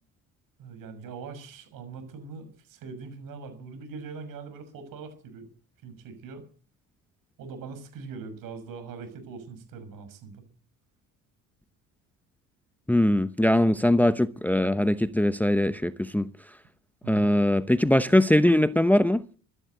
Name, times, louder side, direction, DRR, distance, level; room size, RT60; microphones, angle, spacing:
voice 1, 0.6-5.5 5.8-6.4 7.4-10.4 17.0-17.3, right 5 dB, 75° right, 6.5 m, -42 dB
voice 2, 12.9-16.3 17.1-19.2, left 1 dB, 5° left, 0.8 m, -21 dB
14.0 x 12.0 x 8.1 m
supercardioid pair, 85°, 34 cm